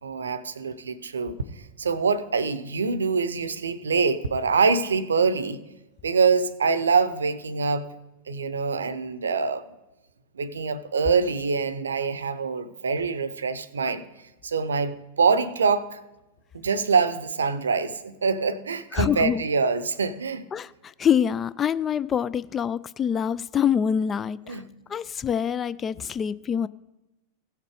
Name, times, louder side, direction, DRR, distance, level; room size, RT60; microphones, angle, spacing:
voice 1, 0.0-1.4 1.8-5.6 6.0-7.8 8.3-9.6 10.3-14.0 14.4-16.0 16.5-20.4 24.5-24.7, right 5 dB, 70° right, 0.6 m, -24 dB
voice 2, 18.9-19.4 20.5-24.6 24.9-26.7, left 8 dB, 25° left, 0.3 m, -25 dB
16.5 x 6.6 x 4.9 m
figure-of-eight pair, 90°, 0 cm